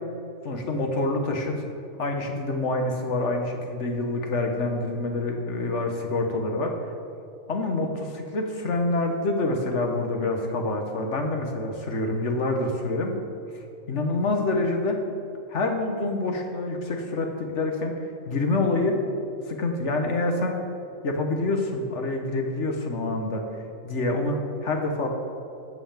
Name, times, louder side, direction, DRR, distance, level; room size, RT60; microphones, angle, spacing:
voice 1, 0.4-1.5 2.0-6.7 7.5-13.1 13.5-13.6 13.9-15.0 15.5-17.9 18.2-19.0 19.5-20.6 21.0-23.4 23.8-25.1, left 2 dB, 55° left, 3 dB, 1.6 m, -26 dB
14.0 x 5.8 x 7.3 m, 2.7 s
omnidirectional pair, 1.4 m